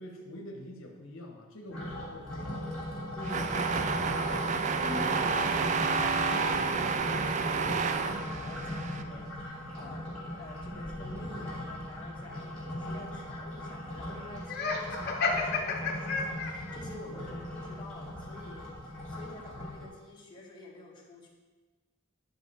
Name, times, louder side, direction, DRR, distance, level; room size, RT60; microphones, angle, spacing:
voice 1, 0.0-2.7 4.0-4.3 17.1-17.5, left 1 dB, 75° left, 1 dB, 1.0 m, -46 dB
sound 1, 1.7-19.9, left 1 dB, 5° left, 2.6 m, -38 dB
voice 2, 3.1-4.4 4.7-21.3, left 1 dB, 25° left, -4 dB, 1.6 m, -48 dB
sound 2, 3.2-9.0, right 5 dB, 35° right, 0.3 m, -30 dB
Laughter, 14.5-16.8, left 4 dB, 50° left, 1.0 m, -31 dB
10.0 x 5.6 x 4.2 m, 1.3 s
head